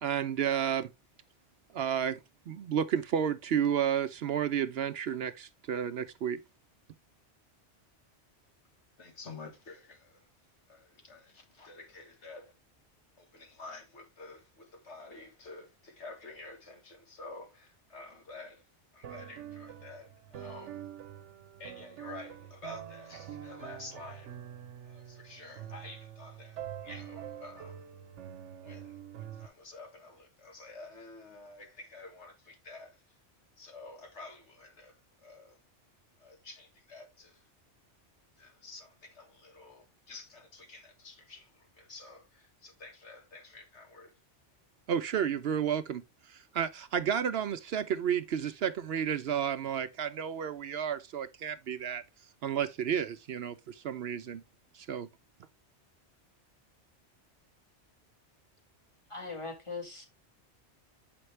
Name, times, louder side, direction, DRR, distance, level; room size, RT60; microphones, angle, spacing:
voice 1, 0.0-0.9 1.7-2.2 2.5-6.4 44.9-46.0 46.3-52.0 52.4-54.4 54.7-55.1, right 8 dB, 65° right, 0.8 m, -31 dB
voice 2, 9.0-10.2 10.7-12.5 13.2-18.6 18.9-20.8 21.6-24.3 24.8-27.8 28.6-33.0 33.6-34.9 35.2-35.6 36.2-37.4 38.4-44.1, left 3 dB, 75° left, 1.9 m, -49 dB
sound 1, 19.0-29.5, right 10 dB, 85° right, 1.1 m, -45 dB
voice 3, 59.1-60.0, left 4 dB, 25° left, 1.8 m, -40 dB
7.8 x 5.3 x 3.2 m
omnidirectional pair, 1.2 m